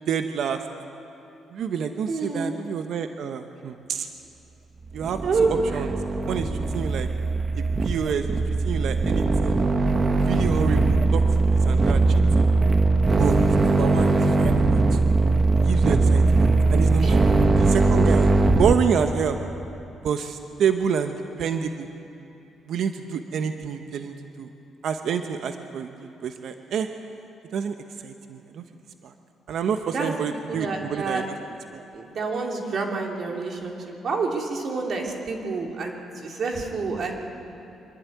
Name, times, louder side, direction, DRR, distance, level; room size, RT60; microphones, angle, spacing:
voice 1, 0.1-0.6 1.5-4.1 4.9-5.9 6.3-7.1 7.5-8.3 8.6-9.6 10.2-11.2 11.6-12.5 13.2-15.1 15.5-17.2 17.6-19.4 20.0-21.9 22.7-24.5 24.8-26.9 27.5-27.7 28.0-28.6 29.0-29.1 29.5-31.2 31.7-31.8, right 7 dB, 70° right, 7 dB, 0.9 m, -28 dB
voice 2, 2.1-2.6 5.2-5.8 17.0-17.3 29.9-30.2 30.5-31.3 31.9-36.0 36.2-37.2, right 3 dB, 55° right, 1 dB, 3.0 m, -28 dB
sound 1, 4.9-18.8, right 3 dB, 35° right, 1.2 m, -20 dB
25.0 x 11.0 x 9.3 m, 2.8 s
cardioid pair, 90°, 0 cm